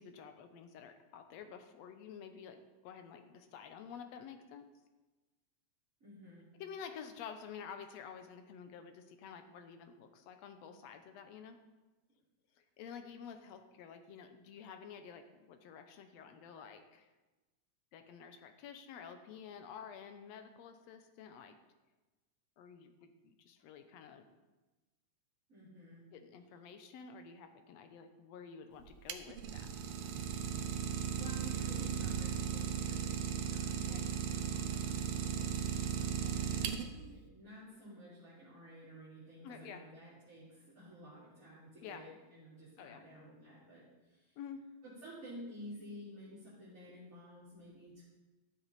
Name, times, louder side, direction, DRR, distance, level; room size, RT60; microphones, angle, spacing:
voice 1, 0.0-4.7 6.5-11.6 12.6-17.1 17.9-21.6 22.6-24.3 26.1-29.7 33.8-34.1 39.4-39.8 41.8-42.1 42.8-43.0 44.4-44.6, left 7 dB, 70° left, 7 dB, 1.9 m, -50 dB
voice 2, 6.0-6.4 25.5-26.0 31.2-44.4 44.8-48.0, equal, 25° right, -12 dB, 4.1 m, -52 dB
Idling, 28.8-37.1, right 8 dB, 70° right, 1.4 m, -36 dB
13.5 x 7.7 x 4.2 m, 1.1 s
omnidirectional pair, 3.4 m